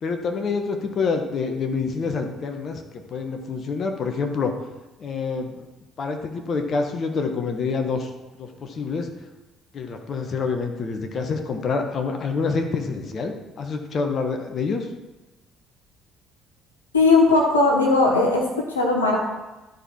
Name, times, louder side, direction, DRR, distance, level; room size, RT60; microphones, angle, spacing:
voice 1, 0.0-4.5 5.0-5.6 6.0-9.1 9.7-14.9, left 4 dB, 45° left, 5 dB, 1.1 m, -27 dB
voice 2, 16.9-19.2, left 3 dB, 85° left, -1 dB, 1.1 m, -18 dB
12.5 x 4.6 x 4.4 m, 1.1 s
figure-of-eight pair, 50°, 0 cm